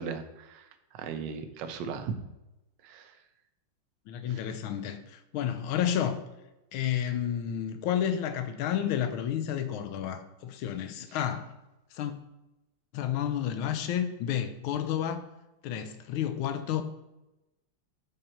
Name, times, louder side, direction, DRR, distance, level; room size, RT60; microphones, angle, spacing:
voice 1, 0.0-2.1 2.8-3.1 4.3-4.4, right 6 dB, 65° right, 1.3 m, -38 dB
voice 2, 4.1-6.2 6.7-11.5 11.9-12.1 12.9-15.3 15.6-16.8, left 9 dB, 80° left, 1.5 m, -31 dB
7.6 x 5.3 x 4.4 m
omnidirectional pair, 2.3 m